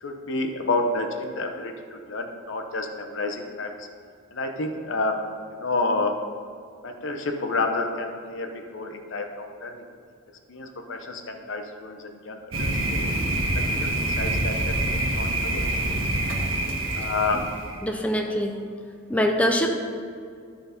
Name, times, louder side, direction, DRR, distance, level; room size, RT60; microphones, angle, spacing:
voice 1, 0.0-3.9 4.3-5.1 5.5-6.2 6.8-9.9 10.5-13.1 13.8-14.7 15.1-15.7 16.9-17.5, left 3 dB, 65° left, 4 dB, 0.8 m, -29 dB
Thunder, 12.5-17.8, right 1 dB, 90° right, 1.3 m, -26 dB
voice 2, 17.8-18.6 19.1-19.7, equal, 5° left, 2 dB, 0.6 m, -23 dB
12.5 x 4.5 x 5.2 m, 2.3 s
head